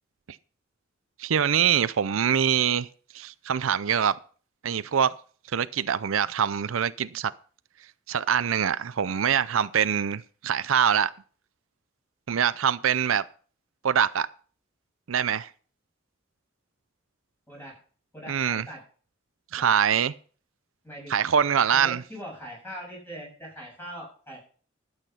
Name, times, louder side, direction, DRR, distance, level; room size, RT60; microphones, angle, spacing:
voice 1, 1.2-2.9 3.1-4.2 4.6-5.2 5.5-7.3 8.1-11.1 12.3-13.2 13.8-14.3 15.1-15.5 18.3-18.7 19.5-20.1 21.1-22.0, right 8 dB, 90° right, 0.5 m, -24 dB
voice 2, 18.1-18.8 19.5-19.8 20.8-21.1 21.7-24.4, equal, 10° left, 7.0 m, -41 dB
12.0 x 8.1 x 5.7 m
head